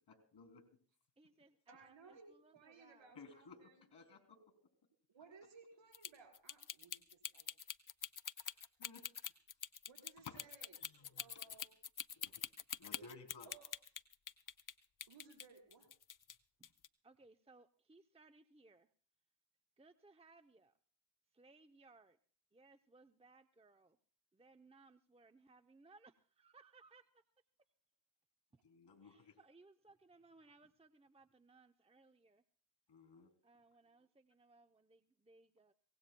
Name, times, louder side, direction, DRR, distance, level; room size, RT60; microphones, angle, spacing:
voice 1, 0.1-0.6 3.1-4.5 8.4-9.0 10.3-10.4 10.8-11.6 12.2-12.4 12.8-13.5 28.6-29.4 32.9-33.3, left 4 dB, 65° left, 7 dB, 3.3 m, -57 dB
voice 2, 1.2-3.2 16.6-16.7 17.0-18.9 19.8-20.7 21.3-22.2 22.5-24.0 24.3-27.2 29.0-32.4 33.4-35.7, right 3 dB, 15° right, 8 dB, 0.7 m, -65 dB
voice 3, 1.7-3.8 5.1-7.5 9.9-10.8 11.1-11.7 13.5-13.7 15.1-15.9, right 4 dB, 85° right, 2 dB, 4.6 m, -61 dB
sound 1, 5.9-14.7 15.0-16.4 16.6-16.9, left 8 dB, 45° left, 0.7 m, -45 dB
23.5 x 18.0 x 2.3 m, 0.43 s
cardioid pair, 50°, 45 cm